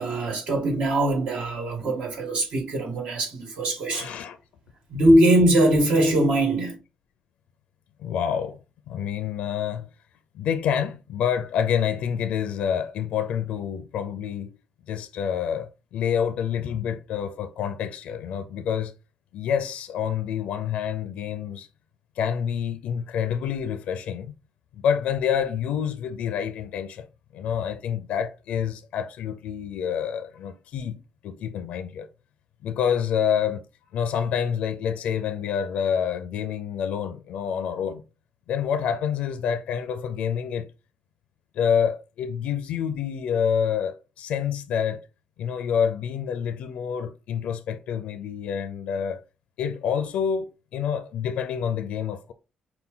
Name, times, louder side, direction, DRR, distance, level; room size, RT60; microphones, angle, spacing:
voice 1, 0.0-4.1 4.9-6.8, right 1 dB, 75° right, 1.9 m, -21 dB
voice 2, 3.9-4.4 8.0-8.6 8.9-9.9 10.3-14.5 14.9-18.9 19.3-21.7 22.2-24.3 24.7-27.1 27.3-32.1 32.6-33.6 33.9-38.0 38.5-40.7 41.5-45.0 45.4-49.2 49.6-52.3, left 8 dB, 90° left, 0.5 m, -27 dB
5.6 x 2.2 x 3.7 m
cardioid pair, 110°, 2 cm